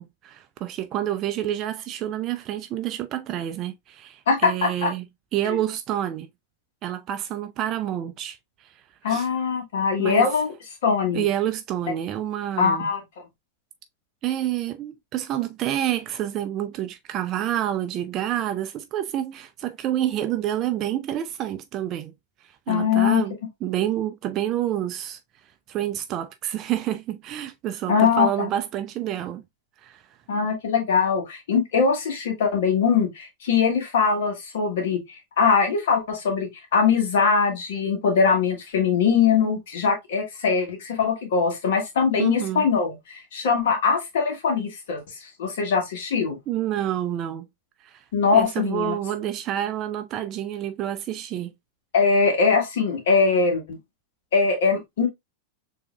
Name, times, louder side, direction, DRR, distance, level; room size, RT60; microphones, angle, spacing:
voice 1, 0.0-5.1 5.3-6.3 6.8-8.8 9.1-9.3 10.0-10.3 11.1-12.9 14.2-22.1 22.4-23.3 23.6-25.2 25.7-29.4 29.8-30.0 42.2-42.7 46.5-47.5 47.8-48.0 48.3-51.5, right 12 dB, 35° right, 0.4 m, -28 dB
voice 2, 4.3-4.9 5.4-5.6 9.0-10.5 10.8-11.2 12.6-13.0 22.7-23.2 27.9-28.5 30.3-46.4 48.1-49.0 51.9-53.8 54.3-55.1, left 5 dB, 55° left, 1.4 m, -22 dB
6.8 x 2.7 x 2.2 m
figure-of-eight pair, 90°, 0 cm